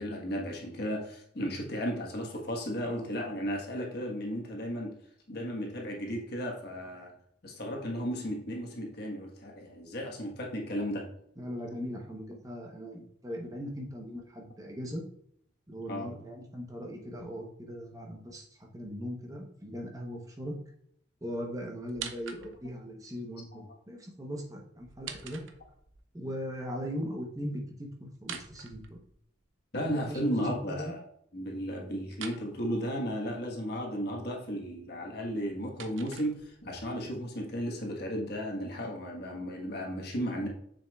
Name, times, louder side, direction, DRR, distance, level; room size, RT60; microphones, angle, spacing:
voice 1, 0.0-5.0 5.3-7.1 7.4-11.1 15.9-16.1 23.5-23.6 29.7-31.0 31.3-40.5, equal, 55° left, 0 dB, 1.4 m, -34 dB
voice 2, 11.4-15.0 15.7-20.6 21.2-25.4 26.1-29.0 29.7-30.9, equal, 20° right, 0 dB, 0.9 m, -39 dB
sound 1, 21.9-22.8 24.8-26.0 28.1-29.5 32.1-32.5 35.2-36.8, right 7 dB, 75° right, 0.7 m, -45 dB
6.9 x 6.3 x 2.4 m, 0.69 s
head